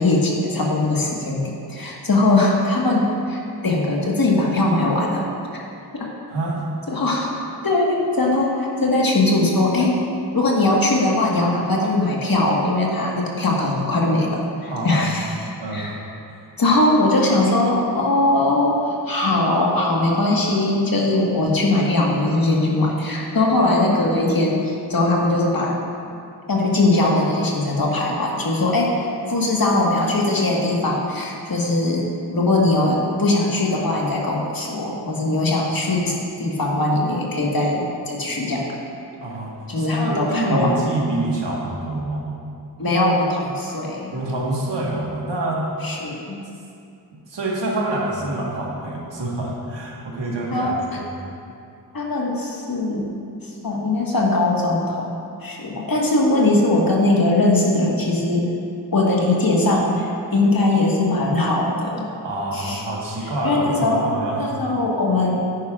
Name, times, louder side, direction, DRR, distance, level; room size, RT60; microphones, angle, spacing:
voice 1, 0.0-5.3 6.9-7.3 7.6-9.9 10.3-15.4 15.7-15.9 16.6-25.8 26.5-38.7 39.7-40.8 42.8-44.1 45.8-46.4 50.5-51.0 51.9-53.0 53.6-55.1 55.4-58.5 58.9-62.1 62.5-62.9 63.2-64.1 64.4-65.5, left 2 dB, 55° left, -2 dB, 1.6 m, -20 dB
voice 2, 6.3-6.6 14.6-16.0 39.2-39.5 39.8-42.3 44.1-45.6 47.3-51.2 62.2-64.5, right 2 dB, 80° right, -3 dB, 1.6 m, -26 dB
10.0 x 9.5 x 2.5 m, 2.5 s
cardioid pair, 45°, 42 cm